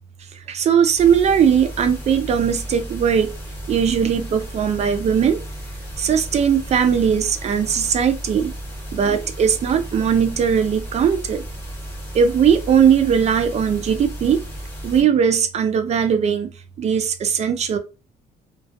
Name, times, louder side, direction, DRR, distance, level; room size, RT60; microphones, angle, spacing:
voice 1, 0.5-3.3 3.7-5.4 6.0-8.5 8.9-11.4 12.1-14.4 14.8-16.5 16.8-17.8, right 7 dB, 40° right, 0.4 m, -19 dB
sound 1, 1.0-15.0, right 1 dB, 15° left, 0.9 m, -34 dB
2.3 x 2.2 x 2.5 m
cardioid pair, 110°, 17 cm